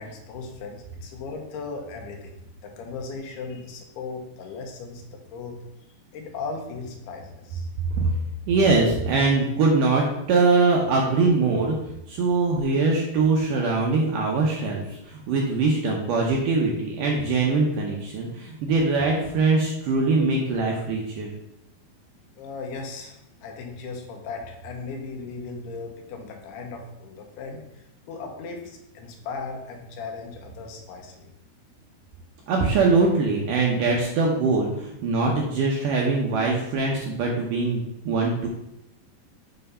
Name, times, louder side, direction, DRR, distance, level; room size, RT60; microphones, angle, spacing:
voice 1, 0.0-2.4 2.6-5.6 6.1-7.7 22.4-31.3, left 4 dB, 80° left, 2 dB, 3.0 m, -37 dB
voice 2, 8.5-11.8 12.1-21.3 32.5-38.5, right 3 dB, 75° right, -1 dB, 2.0 m, -22 dB
7.9 x 3.3 x 5.4 m, 0.85 s
omnidirectional pair, 4.6 m